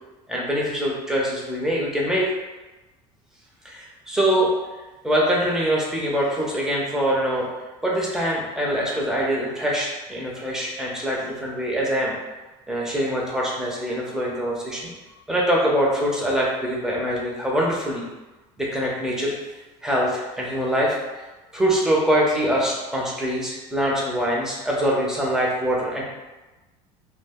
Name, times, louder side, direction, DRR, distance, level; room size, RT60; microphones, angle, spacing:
voice 1, 0.3-2.3 3.6-4.5 5.0-7.5 7.8-12.1 12.7-14.8 15.3-18.0 18.6-19.4 19.8-21.3 21.5-26.0, equal, 5° right, -4 dB, 0.7 m, -24 dB
2.3 x 2.1 x 3.5 m, 1.1 s
supercardioid pair, 100°, 16 cm